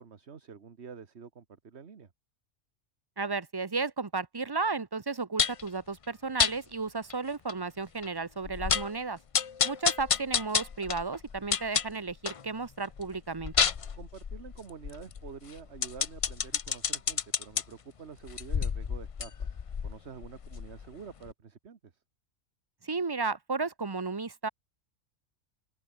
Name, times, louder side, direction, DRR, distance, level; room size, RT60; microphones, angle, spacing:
voice 1, 0.0-2.1 13.9-22.0, right 6 dB, 55° right, 1.7 m, -48 dB
voice 2, 3.2-9.2 9.6-13.5 22.8-24.5, right 4 dB, 25° right, 0.6 m, -33 dB
sound 1, 5.4-5.7 6.4-6.5 7.1-7.2 7.5-7.6 8.0-8.1 8.4-9.0 9.3-12.4 12.8-17.6 18.2-20.9 21.3-21.4, left 6 dB, 50° left, 0.4 m, -30 dB
open air
omnidirectional pair, 1.4 m